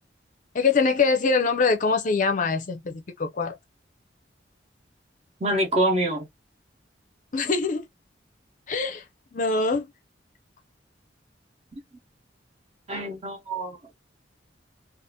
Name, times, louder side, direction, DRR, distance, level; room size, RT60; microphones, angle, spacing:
voice 1, 0.5-3.6 7.3-7.9 8.7-9.0 9.3-9.9, left 4 dB, 45° left, 0.5 m, -23 dB
voice 2, 5.4-6.3 12.9-13.8, right 1 dB, 35° right, 1.0 m, -25 dB
2.8 x 2.4 x 2.2 m
head